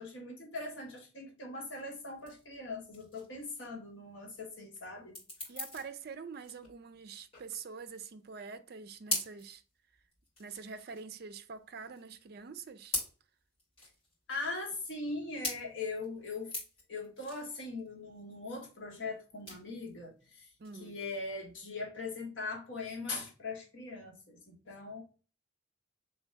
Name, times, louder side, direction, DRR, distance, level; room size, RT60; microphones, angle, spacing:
voice 1, 0.0-5.2 14.3-16.5 16.9-20.5 20.8-25.0, left 3 dB, 65° left, 1.3 m, -40 dB
sound 1, 1.9-21.7, left 1 dB, 30° left, 2.2 m, -43 dB
voice 2, 5.5-9.6 10.4-13.0 20.6-21.0, right 5 dB, 50° right, 0.4 m, -45 dB
3.3 x 3.2 x 4.6 m
head